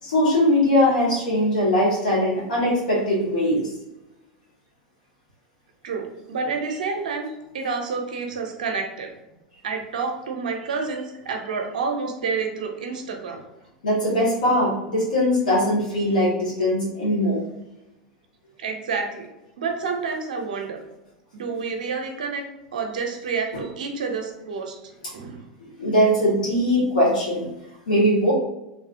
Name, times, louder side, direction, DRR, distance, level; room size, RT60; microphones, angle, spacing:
voice 1, 0.0-3.7 13.8-17.4 25.8-27.5 27.9-28.3, equal, 80° left, -6 dB, 1.4 m, -21 dB
voice 2, 5.8-7.3 7.5-9.1 9.6-13.4 18.6-19.3 19.6-20.8 21.3-22.5 22.7-24.8 25.1-25.5, right 5 dB, 75° right, 3 dB, 0.6 m, -29 dB
3.0 x 2.6 x 2.5 m, 0.96 s
hypercardioid pair, 95°, 4 cm